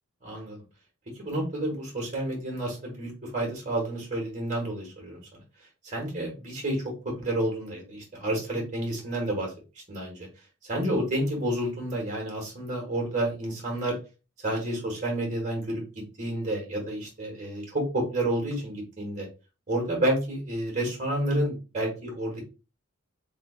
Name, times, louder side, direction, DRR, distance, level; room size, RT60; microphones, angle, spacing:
voice 1, 0.2-0.6 1.1-5.2 5.8-9.5 9.9-10.3 10.6-14.0 14.4-15.8 16.2-19.3 19.7-22.4, right 1 dB, 35° right, 0 dB, 1.4 m, -30 dB
3.6 x 3.6 x 2.4 m, 0.31 s
head